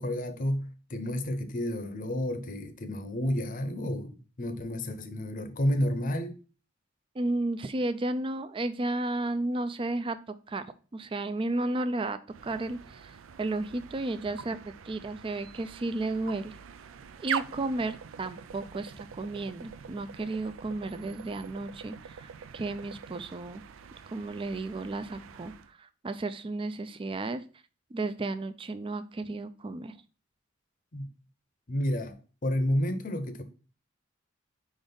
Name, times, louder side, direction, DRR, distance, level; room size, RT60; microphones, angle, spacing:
voice 1, 0.0-6.4 30.9-31.1 31.7-33.4, left 1 dB, 45° left, 0.7 m, -31 dB
voice 2, 7.1-10.2 10.5-10.6 10.9-12.2 12.4-16.5 17.2-23.6 24.1-27.4 27.9-29.9, right 2 dB, 25° right, 0.4 m, -33 dB
sound 1, 12.3-25.7, right 7 dB, 90° right, 0.4 m, -43 dB
5.0 x 3.9 x 5.1 m
head